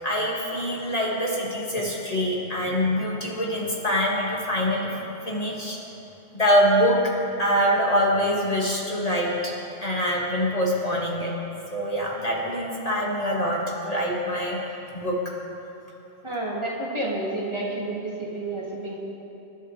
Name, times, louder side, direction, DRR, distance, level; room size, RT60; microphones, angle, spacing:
voice 1, 0.0-4.9 5.3-5.8 6.3-7.1 7.4-11.3 11.7-14.6 14.9-15.2, equal, 35° left, -4 dB, 2.0 m, -24 dB
voice 2, 16.2-19.0, right 2 dB, 25° right, -5 dB, 2.4 m, -30 dB
27.5 x 11.0 x 3.4 m, 2.9 s
omnidirectional pair, 1.1 m